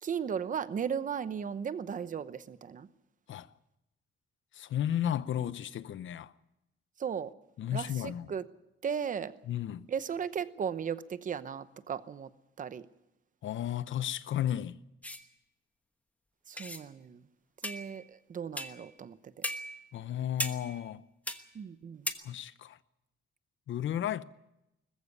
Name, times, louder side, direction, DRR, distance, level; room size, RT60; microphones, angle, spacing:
voice 1, 0.0-2.9 7.0-7.3 7.7-8.4 8.8-9.3 9.9-12.3 12.6-12.8 16.5-17.2 17.6-19.3 21.5-22.1, right 7 dB, 40° right, 0.8 m, -36 dB
voice 2, 4.5-6.3 7.6-8.3 9.5-9.8 13.4-14.8 19.9-21.0 22.2-22.8 23.7-24.2, left 10 dB, 65° left, 0.8 m, -33 dB
sound 1, 15.0-15.2 16.6-16.8 17.6-18.1 18.6-18.9 19.4-19.9 20.4-20.9 21.3-21.5 22.1-22.2, left 1 dB, 5° left, 1.2 m, -37 dB
20.5 x 14.5 x 9.7 m
wide cardioid pair, 180°, 21 cm